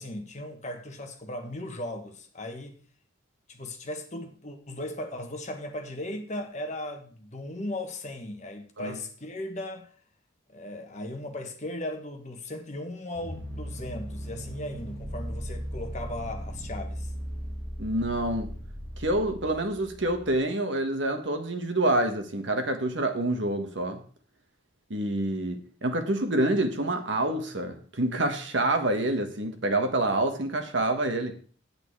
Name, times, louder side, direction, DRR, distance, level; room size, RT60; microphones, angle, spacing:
voice 1, 0.0-2.8 3.5-9.9 10.5-17.1, left 1 dB, 35° left, 1.3 m, -37 dB
sound 1, 13.1-20.4, equal, 5° left, 4.5 m, -37 dB
voice 2, 17.8-18.5 19.0-24.0 24.9-31.3, right 1 dB, 60° right, 1.4 m, -27 dB
8.7 x 8.1 x 4.7 m
head